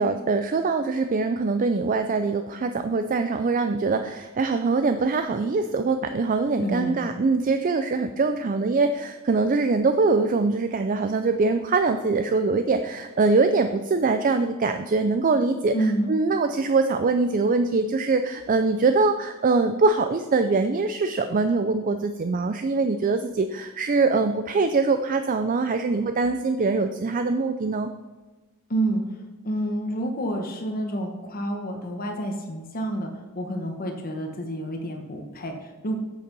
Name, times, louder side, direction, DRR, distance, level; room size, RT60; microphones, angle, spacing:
voice 1, 0.0-15.7 16.1-27.9, right 3 dB, 40° right, 8 dB, 0.4 m, -23 dB
voice 2, 6.6-7.0 15.7-16.1 28.7-29.0 29.4-36.0, right 1 dB, 40° left, 3 dB, 1.1 m, -28 dB
8.0 x 6.8 x 5.4 m, 1.3 s
head